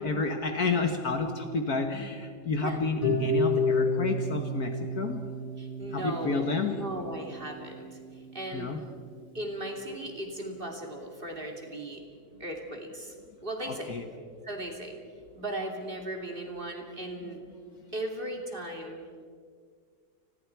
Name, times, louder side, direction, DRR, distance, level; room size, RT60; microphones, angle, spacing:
voice 1, 0.0-5.3 5.9-6.8 8.5-8.8 13.7-14.1 17.2-17.6, left 4 dB, 55° left, 6 dB, 1.6 m, -30 dB
Harp, 3.0-9.1, left 2 dB, 25° left, 5.5 m, -31 dB
voice 2, 5.6-8.0 8.3-8.7 9.3-12.0 12.4-13.1 13.4-13.9 14.4-15.0 15.3-17.4 17.9-19.0, right 1 dB, 25° right, 2 dB, 2.8 m, -37 dB
29.5 x 21.5 x 4.6 m, 2.1 s
omnidirectional pair, 2.2 m